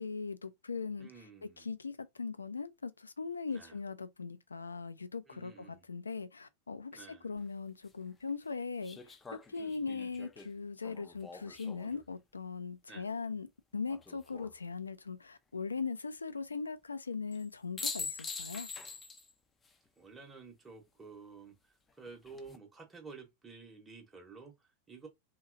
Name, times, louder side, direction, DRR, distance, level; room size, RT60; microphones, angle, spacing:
voice 1, 0.0-1.1 1.4-13.5 13.7-18.7, left 5 dB, 75° left, 0.3 m, -40 dB
voice 2, 1.0-1.7 3.5-3.8 5.3-5.9 6.9-7.3 9.5-9.9 12.9-13.1 20.0-25.1, right 4 dB, 10° right, 0.9 m, -52 dB
sound 1, 7.4-7.5 8.8-12.1 13.9-14.5 17.3-17.5 17.8-19.3 19.6-19.7 22.1-22.6, left 4 dB, 15° left, 0.4 m, -44 dB
2.8 x 2.7 x 2.4 m
figure-of-eight pair, 90°, 0 cm